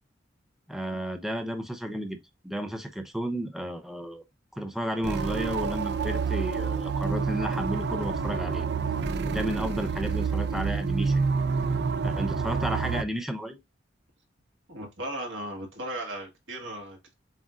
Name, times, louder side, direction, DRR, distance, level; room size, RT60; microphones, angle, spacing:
voice 1, 0.7-2.2 2.4-4.2 4.6-8.6 9.2-11.3 12.0-13.6, equal, ahead, 0.6 m, -32 dB
sound 1, 5.0-13.0, right 5 dB, 60° right, 0.4 m, -28 dB
voice 2, 14.7-17.1, right 1 dB, 85° right, 1.7 m, -37 dB
7.4 x 2.6 x 2.4 m
head